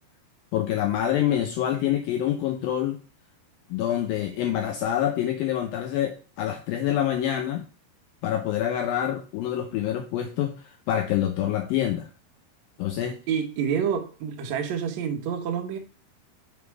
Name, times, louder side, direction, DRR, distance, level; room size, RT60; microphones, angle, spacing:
voice 1, 0.5-3.0 3.7-7.7 8.2-10.6 10.9-12.1 12.8-13.2, left 11 dB, 85° left, 5 dB, 2.1 m, -26 dB
voice 2, 13.3-15.8, right 7 dB, 85° right, 3 dB, 1.5 m, -28 dB
7.3 x 3.2 x 4.6 m, 0.36 s
omnidirectional pair, 4.8 m